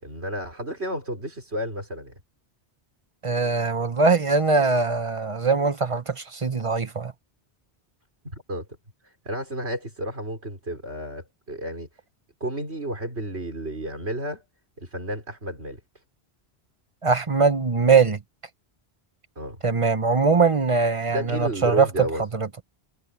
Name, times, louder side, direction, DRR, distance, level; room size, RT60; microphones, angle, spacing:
voice 1, 0.0-2.2 8.2-8.7 9.2-11.9 12.4-14.4 14.8-15.8 19.4-19.6 21.1-22.2, equal, 80° right, 5.7 m, -31 dB
voice 2, 3.2-7.1 17.0-18.2 19.6-21.9 22.3-22.5, right 4 dB, 30° right, 1.1 m, -21 dB
omnidirectional pair, 1.1 m